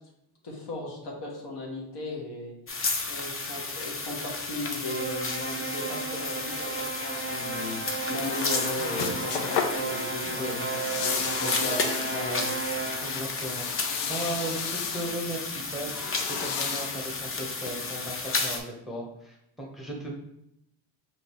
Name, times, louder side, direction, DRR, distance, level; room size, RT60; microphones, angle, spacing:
voice 1, 0.4-2.5 3.1-7.8 8.1-10.7 11.0-12.5, left 2 dB, 55° left, -2 dB, 1.5 m, -37 dB
sound 1, 2.7-18.6, left 3 dB, 25° left, 0.7 m, -33 dB
sound 2, 4.8-13.4, right 4 dB, 25° right, 0.6 m, -34 dB
sound 3, 7.4-18.2, left 7 dB, 85° left, 0.6 m, -35 dB
voice 2, 10.2-10.5 11.4-11.5 13.0-15.9 16.3-20.1, right 1 dB, ahead, -3 dB, 1.0 m, -37 dB
5.1 x 3.0 x 3.0 m, 0.81 s
supercardioid pair, 75°, 50 cm